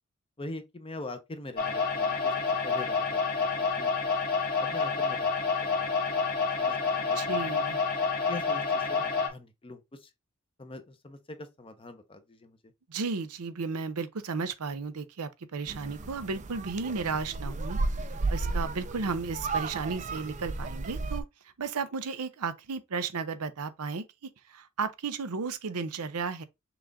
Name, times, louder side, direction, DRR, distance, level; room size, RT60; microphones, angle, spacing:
voice 1, 0.4-2.3 2.6-4.1 4.6-5.9 6.4-7.5 8.3-10.1 10.6-12.6, left 2 dB, 25° left, 0.8 m, -43 dB
sound 1, 1.6-9.3, left 4 dB, 45° left, 1.4 m, -28 dB
voice 2, 7.1-7.8 12.9-21.2 21.6-26.4, right 4 dB, 85° right, 0.6 m, -34 dB
sound 2, 15.7-21.2, right 3 dB, 35° right, 0.5 m, -33 dB
6.0 x 2.5 x 3.5 m
head